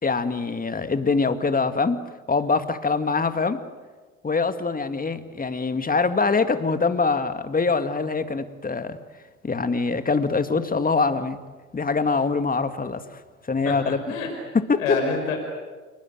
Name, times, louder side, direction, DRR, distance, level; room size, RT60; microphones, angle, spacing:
voice 1, 0.0-3.6 4.2-9.0 9.4-11.4 11.7-13.2 13.5-14.1 14.5-15.0, left 4 dB, 20° left, 10 dB, 2.1 m, -24 dB
voice 2, 13.6-14.3 14.8-15.4, left 4 dB, 80° left, 3 dB, 5.3 m, -27 dB
28.5 x 20.0 x 9.1 m, 1.4 s
hypercardioid pair, 60°, 40 cm